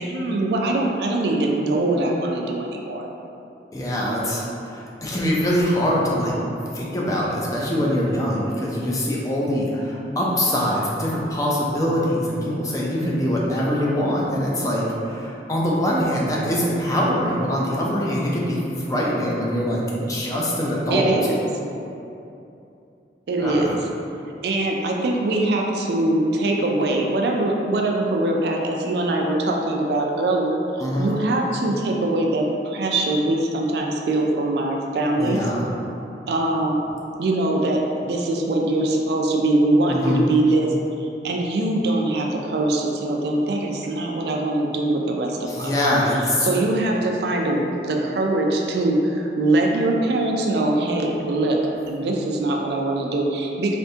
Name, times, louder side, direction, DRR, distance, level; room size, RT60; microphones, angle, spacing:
voice 1, 0.0-3.1 20.9-21.4 23.3-23.7 24.4-30.6 31.0-35.4 36.3-36.8 37.2-40.7 41.0-45.9 46.4-51.6 51.9-53.8, right 2 dB, 65° right, 0 dB, 0.3 m, -22 dB
voice 2, 3.7-6.4 6.7-21.1 23.4-23.7 30.8-31.1 35.2-35.7 39.9-40.2 45.5-46.5, equal, 20° left, -4 dB, 0.4 m, -23 dB
3.3 x 2.6 x 2.7 m, 2.7 s
head